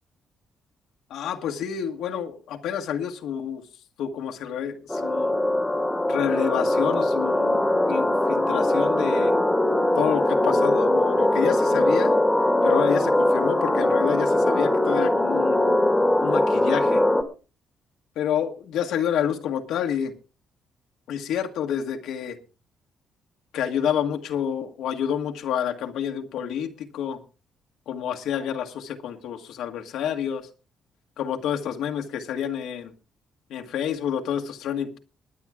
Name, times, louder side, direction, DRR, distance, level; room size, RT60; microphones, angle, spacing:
voice 1, 1.1-3.6 4.0-5.3 6.1-9.3 9.9-12.1 12.6-15.6 16.2-17.0 18.1-20.1 21.1-22.4 23.5-27.2 27.9-30.4 31.2-32.9 33.5-35.0, left 9 dB, 85° left, 3 dB, 1.5 m, -28 dB
sound 1, 4.9-17.2, left 1 dB, 5° left, 1.9 m, -21 dB
21.0 x 9.2 x 3.7 m, 0.34 s
cardioid pair, 90°, 0 cm